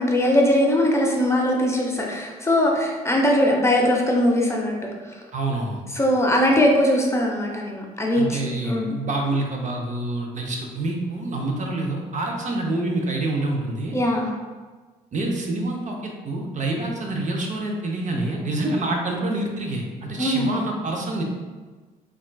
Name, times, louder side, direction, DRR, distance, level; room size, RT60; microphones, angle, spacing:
voice 1, 0.0-4.7 5.1-5.2 5.9-8.4 8.6-8.9 13.9-14.3 20.2-20.6, left 1 dB, 15° left, -1 dB, 0.6 m, -20 dB
voice 2, 5.3-5.8 8.1-14.0 15.1-21.2, right 2 dB, 40° right, 1 dB, 0.6 m, -27 dB
3.6 x 2.3 x 2.2 m, 1.3 s
hypercardioid pair, 55°, 19 cm